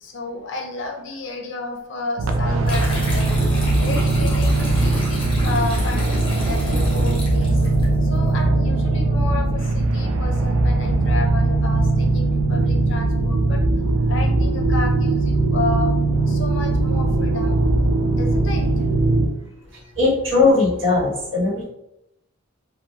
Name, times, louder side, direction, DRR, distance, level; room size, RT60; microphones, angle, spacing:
voice 1, 0.0-3.3 3.8-7.6 8.0-13.6 14.1-15.9 16.2-17.6 18.1-18.6, left 3 dB, 60° left, 2 dB, 0.5 m, -31 dB
sound 1, 2.2-19.3, right 2 dB, 80° right, 0.3 m, -20 dB
sound 2, 2.6-7.9, left 1 dB, 25° left, 0.7 m, -30 dB
voice 2, 20.0-21.7, left 3 dB, 60° right, -8 dB, 1.2 m, -18 dB
3.0 x 2.3 x 2.3 m, 0.85 s
head